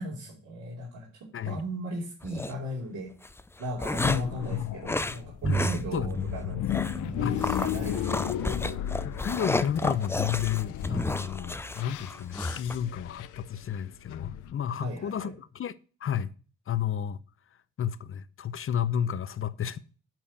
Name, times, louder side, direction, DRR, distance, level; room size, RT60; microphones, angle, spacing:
voice 1, 0.0-3.1 3.6-6.6 7.0-8.8 14.8-15.3, equal, 70° right, 2.9 m, -37 dB
sound 1, 2.2-2.5 3.2-4.4 4.8-5.2 5.5-5.8 6.1-6.2 6.7-7.0 7.4-12.8, left 2 dB, 10° left, 0.5 m, -32 dB
voice 2, 4.0-4.7 5.4-6.3 7.2-7.4 9.0-16.3 16.7-17.2 17.8-19.8, left 9 dB, 45° left, 0.7 m, -32 dB
sound 2, 4.2-14.5, left 12 dB, 85° left, 0.7 m, -35 dB
Bowed string instrument, 5.4-11.1, right 5 dB, 30° right, 0.8 m, -38 dB
8.6 x 4.7 x 7.1 m
cardioid pair, 90°, 30 cm